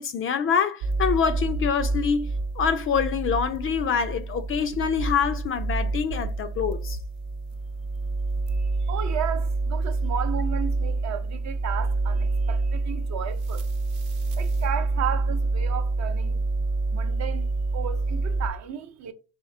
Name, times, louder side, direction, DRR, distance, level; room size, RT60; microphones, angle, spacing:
voice 1, 0.0-2.3 2.6-7.0, left 6 dB, 30° left, 0.5 m, -25 dB
sound 1, 0.8-18.5, right 3 dB, 75° right, 0.9 m, -27 dB
voice 2, 8.9-12.6 12.9-13.6 14.4-16.4 16.9-17.5 17.7-19.1, right 9 dB, 40° right, 0.7 m, -33 dB
4.3 x 2.5 x 3.6 m
hypercardioid pair, 80°, 43 cm